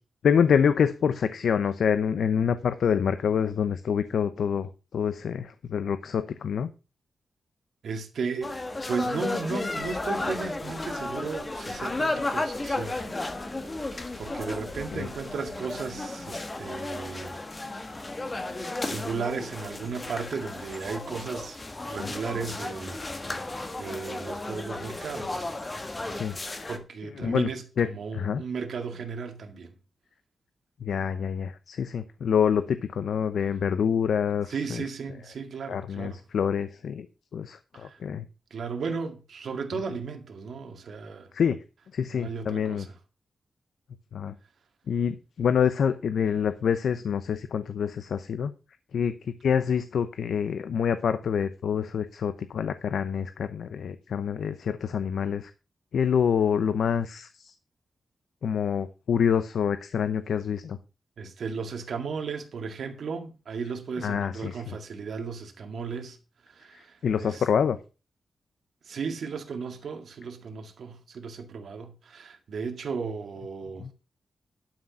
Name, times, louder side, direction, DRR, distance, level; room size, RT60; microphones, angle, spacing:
voice 1, 0.2-6.7 14.9-15.1 22.0-22.1 26.1-26.7 27.2-27.5 27.8-27.9 28.1-28.4 30.8-34.8 35.7-37.1 37.3-38.2 41.3-41.6 41.9-42.9 44.1-44.3 44.9-48.5 48.9-55.5 55.9-57.5 58.4-60.8 64.0-64.8 67.0-67.8 73.8-73.9, left 7 dB, 85° left, 0.7 m, -26 dB
voice 2, 7.8-8.6 8.9-13.0 13.8-17.4 18.5-21.6 21.9-25.5 26.7-29.7 34.5-36.2 37.7-38.0 38.5-41.3 42.1-42.9 61.2-66.2 66.5-67.4 68.8-73.9, right 5 dB, 70° right, 2.0 m, -35 dB
sound 1, 8.4-26.8, left 2 dB, 20° left, 1.4 m, -34 dB
11.5 x 6.2 x 5.7 m
wide cardioid pair, 170°, 0 cm